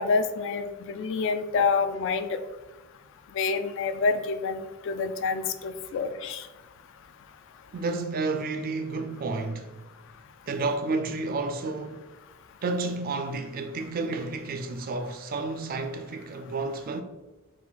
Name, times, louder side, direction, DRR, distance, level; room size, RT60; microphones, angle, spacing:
voice 1, 0.0-2.4 3.3-6.5, left 4 dB, 55° left, 0.3 m, -27 dB
voice 2, 7.7-9.8 10.5-12.0 12.6-17.0, right 3 dB, 40° right, 0.3 m, -31 dB
4.0 x 2.5 x 3.8 m
head